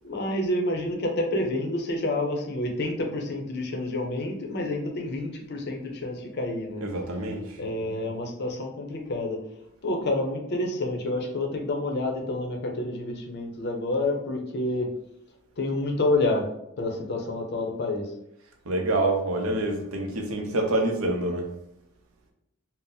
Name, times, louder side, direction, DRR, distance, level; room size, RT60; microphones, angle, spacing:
voice 1, 0.0-6.9 7.6-9.4 9.8-14.9 15.6-16.5 16.8-18.1, left 2 dB, 50° left, 3 dB, 0.5 m, -28 dB
voice 2, 6.8-7.4 18.7-21.5, right 2 dB, 75° right, 3 dB, 0.6 m, -26 dB
2.7 x 2.0 x 3.9 m, 0.80 s
head